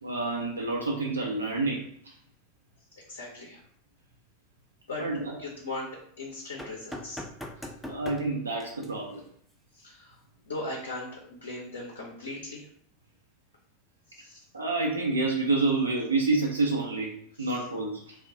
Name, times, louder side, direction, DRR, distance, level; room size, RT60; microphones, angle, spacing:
voice 1, 0.0-2.1 5.0-5.4 7.8-9.2 14.5-18.1, right 3 dB, 80° right, 0 dB, 0.4 m, -28 dB
voice 2, 3.1-3.6 4.9-5.0 5.4-5.9 6.2-7.2 7.6-7.7 9.7-10.2 10.5-12.7 14.1-14.4 17.4-17.6, left 2 dB, 75° left, -3 dB, 0.6 m, -38 dB
sound 1, 6.6-8.3 8.6-8.9 10.5-10.6, equal, 5° left, 0.4 m, -39 dB
2.2 x 2.1 x 3.6 m, 0.63 s
figure-of-eight pair, 85°, 0 cm